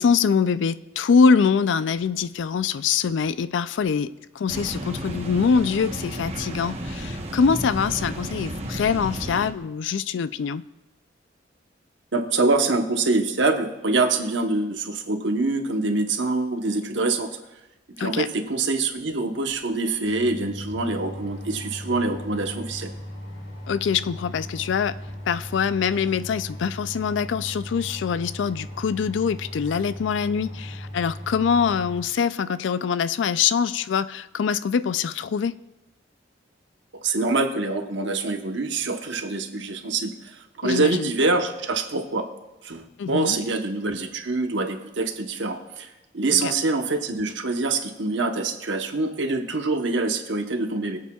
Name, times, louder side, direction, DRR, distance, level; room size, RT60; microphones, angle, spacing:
voice 1, 0.0-4.1 4.4-10.6 18.0-18.3 23.7-25.0 25.3-35.5 40.6-41.1 43.0-43.4 46.3-46.5, left 6 dB, 70° left, 15 dB, 0.4 m, -24 dB
sound 1, 4.5-9.5, right 1 dB, 35° right, 1.1 m, -32 dB
voice 2, 12.1-17.3 18.0-22.9 37.0-40.1 40.6-42.3 42.6-45.9 46.1-51.0, right 3 dB, 70° right, 5 dB, 1.1 m, -25 dB
sound 2, 19.5-19.6 19.9-32.0, equal, 85° left, 3.5 m, -37 dB
24.5 x 8.2 x 2.4 m, 0.99 s
head